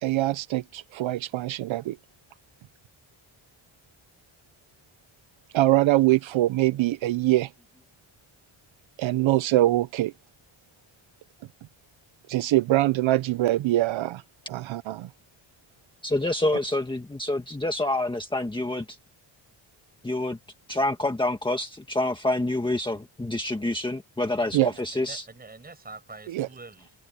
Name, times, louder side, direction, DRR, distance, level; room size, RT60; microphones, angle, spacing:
voice 1, 0.0-2.0 5.5-7.5 9.0-10.1 12.3-14.2 14.5-15.1 24.5-24.7 26.3-26.5, right 16 dB, 75° right, 0.7 m, -23 dB
voice 2, 16.0-18.8 20.0-20.4 20.7-25.2, left 2 dB, 10° left, 1.7 m, -27 dB
voice 3, 24.4-26.9, right 3 dB, 20° right, 7.0 m, -46 dB
open air
wide cardioid pair, 170°, 48 cm